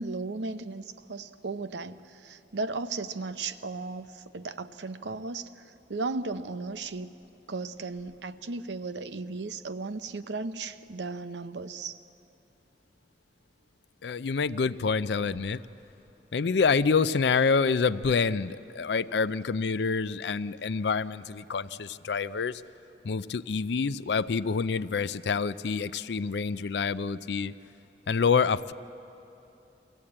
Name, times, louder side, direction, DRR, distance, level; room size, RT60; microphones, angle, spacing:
voice 1, 0.0-5.6 5.9-7.1 7.5-12.0, right 3 dB, 80° right, 11 dB, 0.7 m, -35 dB
voice 2, 14.0-15.6 16.3-22.6 23.0-27.5 28.1-28.7, left 5 dB, 70° left, 15 dB, 0.5 m, -27 dB
23.0 x 16.0 x 8.7 m, 2.9 s
head